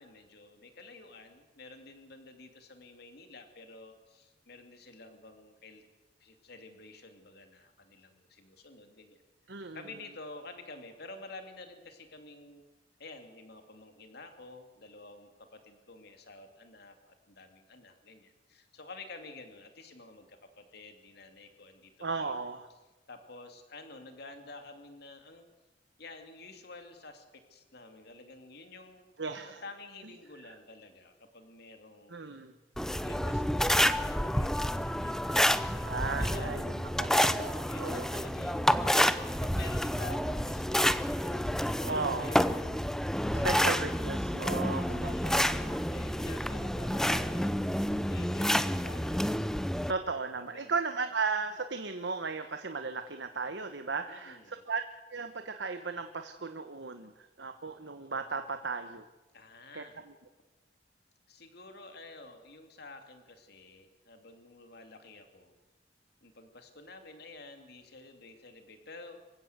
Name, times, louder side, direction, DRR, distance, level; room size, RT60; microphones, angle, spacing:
voice 1, 0.0-5.9 6.2-9.2 9.7-12.6 13.0-22.4 23.1-25.4 26.0-29.1 29.4-32.2 33.0-36.6 37.7-42.8 43.3-43.8 44.7-47.5 48.1-50.1 50.4-50.7 54.1-54.6 59.3-60.0 61.3-65.5 66.2-69.2, left 3 dB, 60° left, 6 dB, 2.9 m, -50 dB
voice 2, 9.5-9.8 22.0-22.7 29.2-29.6 32.1-32.5 35.8-38.1 41.9-42.3 43.4-45.8 49.9-54.8 55.1-59.0 59.7-60.1, right 4 dB, 75° right, 7 dB, 1.2 m, -36 dB
sound 1, 32.8-49.9, equal, 5° left, 0.7 m, -29 dB
26.5 x 16.0 x 8.1 m, 1.2 s
head